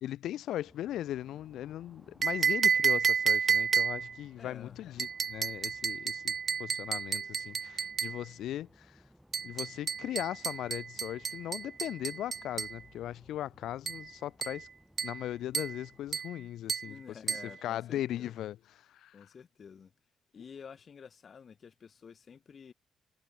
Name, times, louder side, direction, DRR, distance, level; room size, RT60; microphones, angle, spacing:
voice 1, 0.0-6.3 6.6-8.9 9.4-14.7 15.0-17.0 17.2-17.3 17.6-18.6 19.0-19.1, left 12 dB, 80° left, 0.3 m, -38 dB
sound 1, 0.6-16.2, equal, ahead, 6.9 m, -61 dB
sound 2, 2.2-4.2 5.0-8.2 9.3-12.8 13.9-14.1 14.4-14.7 15.0-15.3 15.5-15.8 16.1-16.4 16.7-16.9 17.3-17.5, right 6 dB, 45° right, 0.5 m, -31 dB
voice 2, 4.4-4.8 16.8-18.4 19.1-19.9 20.3-22.7, left 6 dB, 45° left, 2.8 m, -50 dB
cardioid pair, 90°, 0 cm